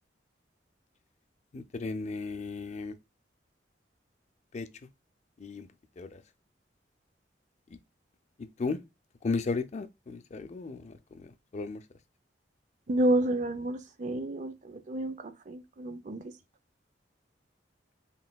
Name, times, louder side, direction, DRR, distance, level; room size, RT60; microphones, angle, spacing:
voice 1, 1.5-2.9 4.5-4.7 5.4-5.7 6.0-6.2 8.6-8.8 9.2-11.3 11.5-11.8, left 4 dB, 40° left, 0.4 m, -34 dB
voice 2, 12.9-16.3, right 1 dB, 45° right, 0.5 m, -30 dB
4.0 x 3.7 x 2.2 m
head